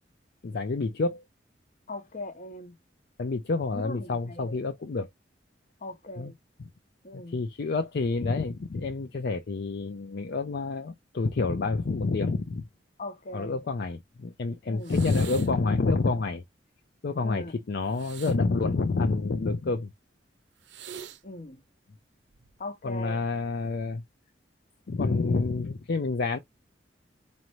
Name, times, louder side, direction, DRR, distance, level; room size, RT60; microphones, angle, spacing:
voice 1, 0.4-1.2 3.2-5.1 6.2-6.3 7.1-12.6 13.3-16.4 17.0-19.9 22.8-24.0 24.9-26.4, left 3 dB, 60° left, 0.5 m, -28 dB
voice 2, 1.9-2.7 3.7-4.6 5.8-6.3 7.0-7.4 13.0-13.6 14.7-14.9 17.2-17.6 21.2-21.6 22.6-23.2, left 2 dB, 45° left, 0.9 m, -39 dB
sound 1, 14.8-15.7 17.9-19.4 20.6-21.2 22.3-22.6, right 8 dB, 75° right, 0.6 m, -45 dB
4.3 x 2.6 x 3.0 m
head